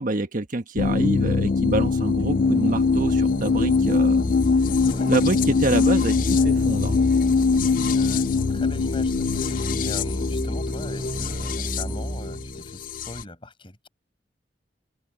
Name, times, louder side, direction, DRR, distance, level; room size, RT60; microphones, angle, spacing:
voice 1, 0.0-4.2 5.1-7.0, right 2 dB, 50° right, 1.3 m, -26 dB
sound 1, 0.8-13.2, left 4 dB, 50° left, 0.4 m, -22 dB
sound 2, 2.1-12.8, right 1 dB, 25° right, 1.5 m, -32 dB
voice 2, 4.8-5.1 7.7-13.9, left 1 dB, 30° left, 6.8 m, -41 dB
head